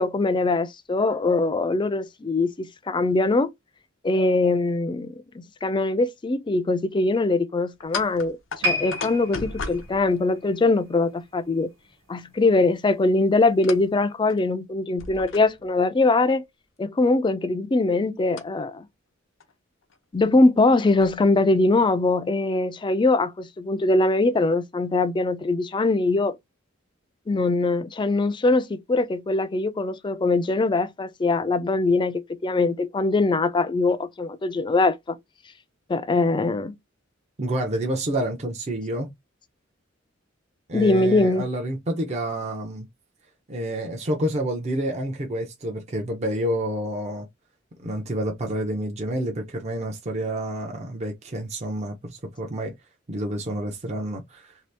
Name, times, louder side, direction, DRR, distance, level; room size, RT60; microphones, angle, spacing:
voice 1, 0.0-3.5 4.0-8.4 8.6-11.7 12.1-16.4 16.8-18.9 20.1-26.4 27.3-35.2 35.9-36.7 40.7-41.5, left 3 dB, 25° left, 0.4 m, -22 dB
sound 1, 7.8-10.8 13.6-13.9 14.3-14.4 15.0-15.8 18.3-18.4 19.4-19.5 19.8-20.0 20.6-21.2, left 4 dB, 75° left, 0.6 m, -36 dB
sound 2, 8.6-11.9 12.2-12.5 13.2-13.3, left 1 dB, 80° right, 1.3 m, -32 dB
voice 2, 37.4-39.1 40.7-42.9 43.5-47.3 47.8-52.7 53.1-54.5, right 1 dB, 35° right, 0.6 m, -28 dB
2.9 x 2.8 x 3.3 m
head